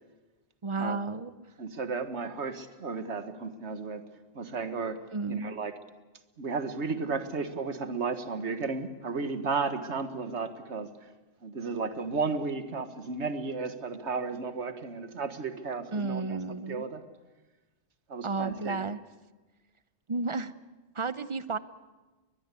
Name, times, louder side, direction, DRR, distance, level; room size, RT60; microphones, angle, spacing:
voice 1, 0.6-1.5 5.1-5.6 15.9-16.8 18.2-19.0 20.1-20.5 20.9-21.6, right 3 dB, 30° right, 14 dB, 0.7 m, -32 dB
voice 2, 1.6-4.0 4.3-5.0 5.3-5.7 6.4-10.9 11.4-17.0 18.1-18.9, right 4 dB, 65° right, 9 dB, 1.7 m, -33 dB
21.5 x 21.0 x 8.3 m, 1.2 s
omnidirectional pair, 1.3 m